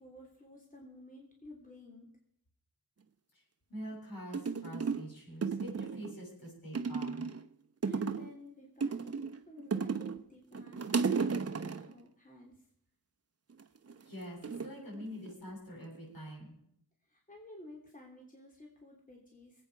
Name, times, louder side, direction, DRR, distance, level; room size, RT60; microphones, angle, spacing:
voice 1, 0.0-2.1 7.8-9.2 9.5-12.7 17.0-19.7, left 1 dB, 20° left, -1 dB, 3.0 m, -52 dB
voice 2, 3.7-7.3 14.1-16.5, equal, 65° left, -2 dB, 7.2 m, -45 dB
sound 1, 3.9-4.0 4.3-5.1 5.4-6.2 6.7-7.5 7.8-8.4 8.8-10.2 10.5-11.9 13.5-13.9 14.4-15.5 15.8-16.3, right 5 dB, 40° right, 1.0 m, -34 dB
22.0 x 8.9 x 4.7 m, 0.70 s
wide cardioid pair, 75°, 38 cm